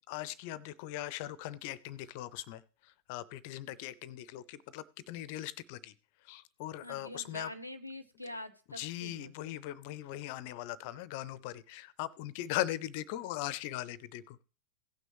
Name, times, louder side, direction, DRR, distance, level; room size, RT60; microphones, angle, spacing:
voice 1, 0.1-5.9 6.2-7.5 8.8-14.4, left 14 dB, 45° left, 20 dB, 0.6 m, -40 dB
voice 2, 6.8-9.5, left 1 dB, 90° right, 7 dB, 1.0 m, -45 dB
17.0 x 6.2 x 3.1 m, 0.36 s
figure-of-eight pair, 90°, 0 cm